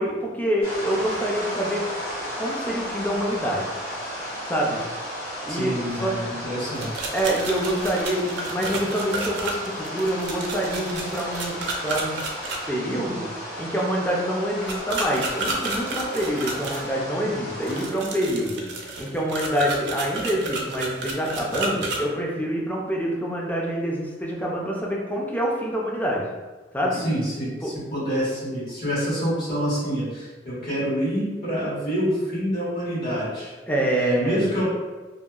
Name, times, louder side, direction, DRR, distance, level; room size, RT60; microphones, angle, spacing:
voice 1, 0.0-1.9 2.3-3.8 4.5-4.8 5.5-6.2 7.1-12.1 12.7-13.3 13.6-18.6 19.0-26.3 26.7-27.0 27.6-27.7 33.7-34.4, right 1 dB, 10° left, -2 dB, 0.4 m, -26 dB
sound 1, 0.6-17.8, equal, 35° left, 1.4 m, -34 dB
voice 2, 5.5-7.0 26.9-33.5 33.9-34.6, equal, 55° left, -10 dB, 1.4 m, -27 dB
sound 2, 6.7-12.6 14.7-16.8 17.6-22.0, right 3 dB, 70° right, 0.4 m, -31 dB
2.7 x 2.3 x 2.3 m, 1.3 s
head